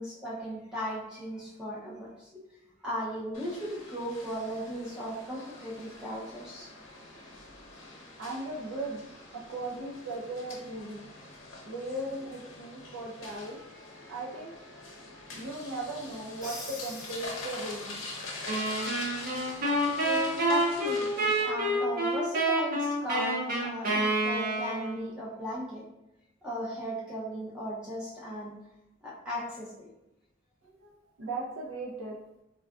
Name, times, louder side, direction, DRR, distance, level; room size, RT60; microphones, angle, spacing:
voice 1, 0.0-2.4 2.8-6.7 20.0-25.8 26.4-28.5 29.0-29.9, equal, 5° right, -7 dB, 0.4 m, -37 dB
sound 1, 3.3-21.4, left 2 dB, 80° left, 0.7 m, -44 dB
voice 2, 8.2-9.0 9.3-11.1 11.6-18.0 18.7-20.6 30.6-32.2, right 2 dB, 85° right, -3 dB, 0.5 m, -39 dB
Crash cymbal, 16.4-18.1, left 2 dB, 20° left, 0.8 m, -44 dB
sound 2, 18.5-25.0, right 1 dB, 45° right, 0.7 m, -28 dB
3.5 x 2.2 x 2.3 m, 0.87 s
head